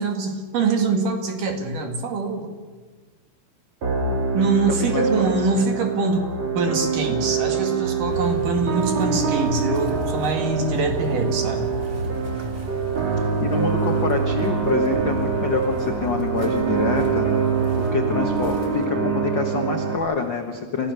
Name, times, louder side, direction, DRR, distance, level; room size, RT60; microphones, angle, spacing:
voice 1, 0.0-2.5 4.3-6.3 6.6-11.7, right 3 dB, 60° right, 4 dB, 3.7 m, -24 dB
sound 1, 3.8-20.0, right 5 dB, 45° right, 4.3 m, -24 dB
sound 2, 8.1-18.9, right 2 dB, 20° right, 2.8 m, -34 dB
voice 2, 13.4-17.3 17.8-20.9, left 5 dB, 85° left, 4 dB, 1.0 m, -26 dB
29.5 x 15.5 x 6.9 m, 1.4 s
omnidirectional pair, 4.4 m